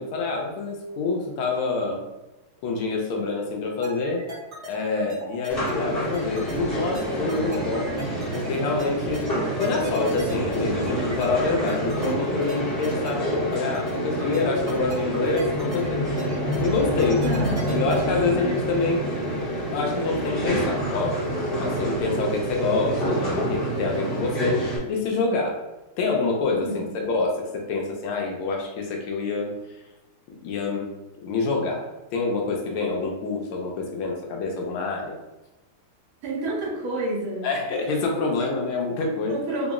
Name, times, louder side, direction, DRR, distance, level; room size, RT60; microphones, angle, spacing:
voice 1, 0.0-2.0 2.6-4.3 4.7-7.9 8.3-9.3 9.6-16.0 16.6-17.3 17.7-19.1 19.7-24.6 24.9-25.6 26.0-29.5 30.4-30.9 31.2-35.2 37.4-39.4, left 3 dB, 80° left, 1 dB, 1.6 m, -26 dB
sound 1, 3.8-18.5, equal, 45° right, 0.9 m, -37 dB
sound 2, 5.5-24.8, equal, 40° left, 0.8 m, -27 dB
voice 2, 17.2-17.8 26.6-27.0 36.2-37.5 39.3-39.7, right 1 dB, 75° right, -4 dB, 1.8 m, -29 dB
4.3 x 2.0 x 3.6 m, 1.0 s
omnidirectional pair, 2.4 m